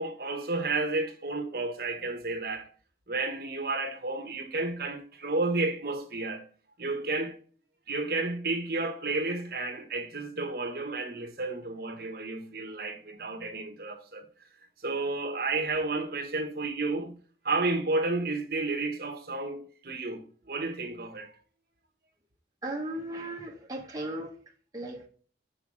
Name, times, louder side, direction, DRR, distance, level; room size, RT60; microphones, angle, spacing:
voice 1, 0.0-2.7 3.1-6.5 6.8-7.3 7.9-14.2 14.8-17.2 17.4-20.2 20.5-21.3, right 3 dB, 55° right, 1.1 m, -31 dB
voice 2, 22.6-24.3 24.7-25.1, right 1 dB, 20° right, 1.1 m, -36 dB
5.5 x 5.5 x 4.7 m
head